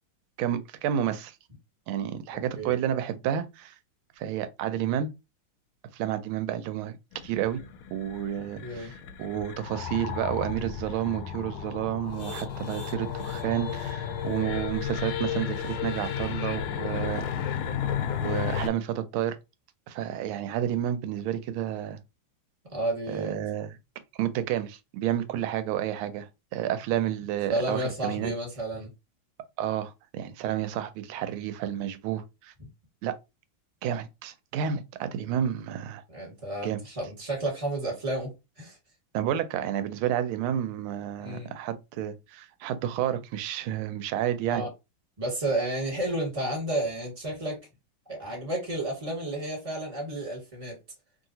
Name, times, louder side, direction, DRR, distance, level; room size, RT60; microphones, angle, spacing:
voice 1, 0.4-1.3 1.9-3.7 4.2-5.1 5.9-7.0 7.2-7.6 7.9-8.9 9.2-17.6 18.2-19.4 19.9-22.0 23.1-23.8 24.2-28.3 29.6-32.5 33.0-33.2 33.8-36.0 36.6-36.8 39.1-44.6, right 10 dB, 85° right, 1.4 m, -30 dB
sound 1, 7.1-18.7, left 8 dB, 85° left, 1.4 m, -33 dB
voice 2, 8.6-8.9 22.7-23.4 27.5-28.9 32.6-32.7 36.1-38.8 41.2-41.5 44.5-44.7 45.2-47.6 48.1-50.8, right 1 dB, 20° right, 1.5 m, -31 dB
3.0 x 2.8 x 2.7 m
omnidirectional pair, 2.2 m